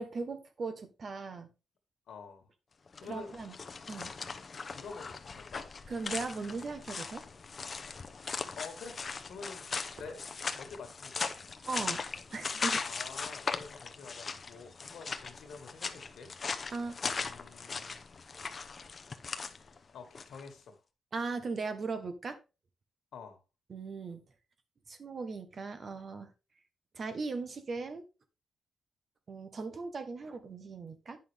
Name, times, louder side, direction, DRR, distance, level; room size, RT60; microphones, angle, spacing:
voice 1, 0.0-1.5 3.0-3.5 3.9-4.1 5.9-7.2 11.7-12.0 12.3-12.8 16.7-17.0 21.1-22.4 23.7-24.2 24.9-26.3 26.9-28.0 29.3-31.2, right 4 dB, 45° right, 1.3 m, -38 dB
voice 2, 2.1-2.5 3.0-3.3 4.7-5.7 8.5-9.0 9.3-9.7 10.0-10.2 10.5-11.3 12.8-16.7 17.1-18.0 19.9-20.8 23.1-23.4, left 5 dB, 75° left, 1.9 m, -48 dB
sound 1, 2.9-20.5, left 4 dB, 35° left, 0.8 m, -39 dB
9.3 x 6.0 x 3.5 m
cardioid pair, 115°, 0 cm